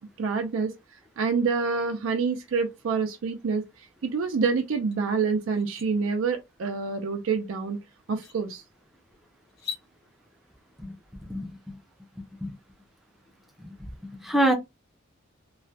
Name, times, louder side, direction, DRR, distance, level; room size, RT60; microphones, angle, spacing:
voice 1, 0.2-0.7 1.2-3.6 4.0-7.8 8.1-8.6, right 5 dB, 80° right, 0.4 m, -27 dB
sound 1, 4.9-5.0 5.4-5.9 7.5-7.6 8.1-8.4 9.5-9.9, left 6 dB, 50° left, 0.8 m, -39 dB
voice 2, 11.3-11.8 12.4-12.5 13.6-13.7 14.1-14.5, right 1 dB, ahead, 0.4 m, -26 dB
2.3 x 2.1 x 2.6 m
head